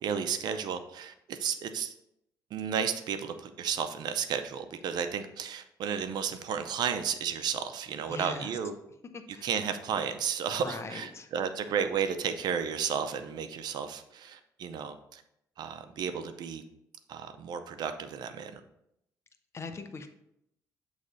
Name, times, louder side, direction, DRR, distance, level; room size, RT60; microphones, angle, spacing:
voice 1, 0.0-1.9 2.5-8.7 9.3-15.2 15.6-16.6 17.1-18.6, right 7 dB, 70° right, 9 dB, 0.6 m, -33 dB
voice 2, 8.1-8.5 9.1-9.5 10.6-11.3 19.5-20.1, left 4 dB, 40° left, 8 dB, 0.7 m, -40 dB
7.9 x 3.2 x 4.0 m, 0.79 s
cardioid pair, 100°, 7 cm